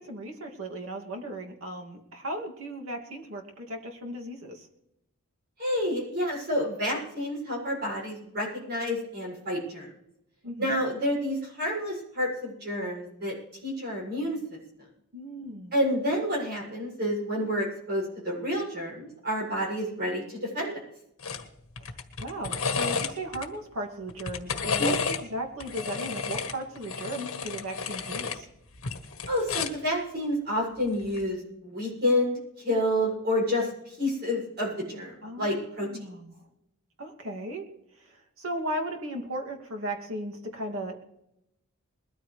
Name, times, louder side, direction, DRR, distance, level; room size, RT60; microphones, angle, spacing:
voice 1, 0.0-4.7 10.4-10.7 15.1-15.8 22.2-28.5 35.2-36.4 37.0-37.7 38.0-41.1, right 1 dB, 65° right, 2 dB, 2.7 m, -36 dB
voice 2, 5.6-9.9 10.6-13.3 13.6-14.4 15.7-20.8 24.8-24.9 29.3-35.9, equal, 50° right, -2 dB, 7.3 m, -29 dB
sound 1, 21.2-21.4 21.8-23.5 24.1-25.2 25.6-28.4 28.7-29.9 31.0-31.2, left 5 dB, 70° left, 1.6 m, -31 dB
21.0 x 13.5 x 3.4 m, 0.82 s
head